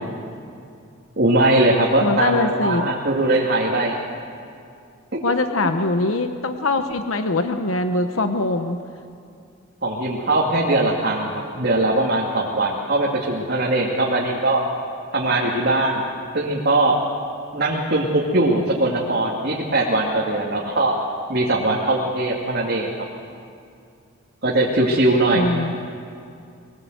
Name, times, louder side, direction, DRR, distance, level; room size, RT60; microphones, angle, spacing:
voice 1, 1.2-4.0 5.1-5.3 9.8-14.6 15.1-16.0 16.3-16.9 17.5-20.9 21.3-22.9 24.4-25.5, right 2 dB, 50° right, -4 dB, 2.5 m, -20 dB
voice 2, 2.0-2.9 5.2-8.8 25.3-25.7, left 2 dB, 85° left, 7 dB, 1.0 m, -22 dB
22.5 x 19.5 x 8.1 m, 2.4 s
head